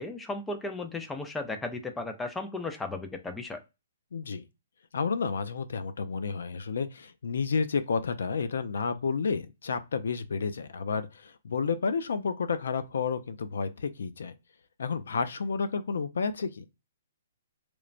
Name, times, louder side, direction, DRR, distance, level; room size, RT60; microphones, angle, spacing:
voice 1, 0.0-3.6, left 2 dB, 5° left, 0.3 m, -35 dB
voice 2, 4.1-4.5 4.9-14.3 14.8-16.6, left 5 dB, 80° left, 0.4 m, -31 dB
3.0 x 2.1 x 2.4 m
hypercardioid pair, 170°, 0 cm